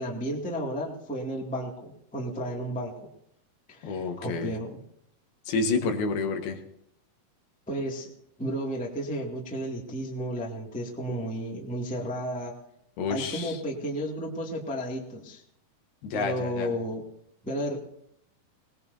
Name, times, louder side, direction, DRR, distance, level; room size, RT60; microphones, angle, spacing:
voice 1, 0.0-3.0 3.7-4.8 7.7-8.1 8.4-12.5 13.1-15.4 16.1-17.0 17.4-17.8, equal, 10° left, -2 dB, 0.3 m, -33 dB
voice 2, 3.8-4.5 5.5-6.6 13.0-13.6 16.0-16.7, left 4 dB, 70° left, 4 dB, 3.2 m, -29 dB
23.0 x 19.5 x 2.7 m, 0.75 s
omnidirectional pair, 4.7 m